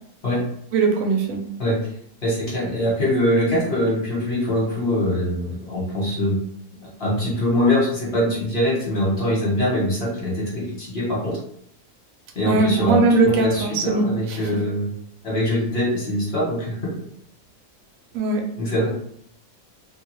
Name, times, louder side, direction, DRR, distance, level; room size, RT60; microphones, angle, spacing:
voice 1, 0.7-1.4 12.4-14.6 18.1-18.4, right 3 dB, 70° right, 3 dB, 1.0 m, -20 dB
voice 2, 2.2-6.4 6.8-11.4 12.3-13.0 13.2-14.9 15.2-16.8 18.6-18.9, left 1 dB, 45° left, -5 dB, 1.1 m, -23 dB
2.6 x 2.3 x 2.9 m, 0.68 s
omnidirectional pair, 1.6 m